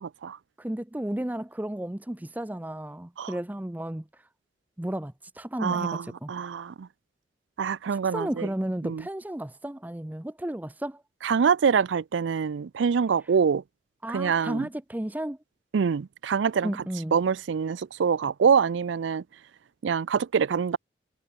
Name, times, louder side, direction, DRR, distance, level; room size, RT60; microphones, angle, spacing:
voice 1, 0.0-0.4 3.2-3.3 5.6-6.9 7.6-8.5 8.8-9.1 11.2-13.6 14.1-14.7 15.7-16.7 17.1-19.2 19.8-20.8, right 6 dB, 85° right, 0.4 m, -25 dB
voice 2, 0.6-4.0 4.8-6.3 7.9-11.0 14.0-15.4 16.6-17.1, right 1 dB, 10° right, 0.5 m, -33 dB
head